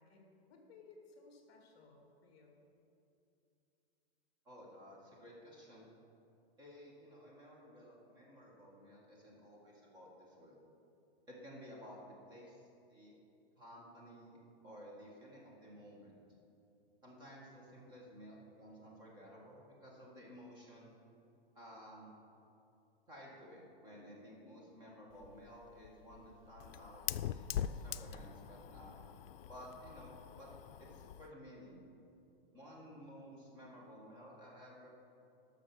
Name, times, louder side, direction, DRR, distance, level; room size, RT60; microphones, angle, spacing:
voice 1, 0.0-2.6, left 3 dB, 25° left, 1 dB, 2.1 m, -60 dB
voice 2, 4.4-5.9 6.6-10.6 11.3-13.1 13.6-16.2 17.0-20.9 21.5-22.2 23.1-29.0 29.5-30.5 30.8-31.9 32.5-34.9, equal, 15° right, -3 dB, 1.6 m, -55 dB
Fire, 25.1-31.3, left 10 dB, 75° left, 0.5 m, -43 dB
13.0 x 6.2 x 6.0 m, 2.7 s
hypercardioid pair, 170°, 30 cm